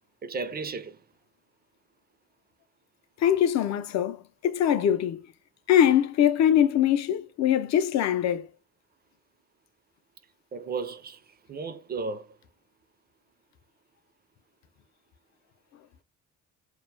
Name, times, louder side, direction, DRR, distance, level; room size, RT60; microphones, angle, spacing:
voice 1, 0.2-1.0 10.5-12.4, right 4 dB, 30° right, 0.4 m, -34 dB
voice 2, 3.2-5.2 5.7-8.5, left 10 dB, 65° left, 0.5 m, -22 dB
2.3 x 2.0 x 3.1 m
cardioid pair, 90°, 30 cm